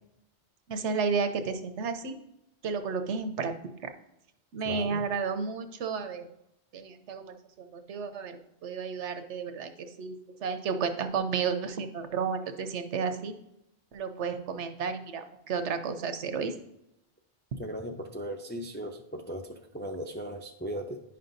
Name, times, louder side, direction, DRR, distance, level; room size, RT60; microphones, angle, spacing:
voice 1, 0.7-2.2 2.6-3.5 3.8-3.9 4.5-6.3 6.7-10.2 10.4-13.3 13.9-16.5, right 5 dB, 85° right, 8 dB, 1.0 m, -32 dB
voice 2, 4.6-5.0 17.6-21.0, equal, 15° left, 1 dB, 0.3 m, -37 dB
10.0 x 5.6 x 2.6 m, 0.83 s
omnidirectional pair, 1.2 m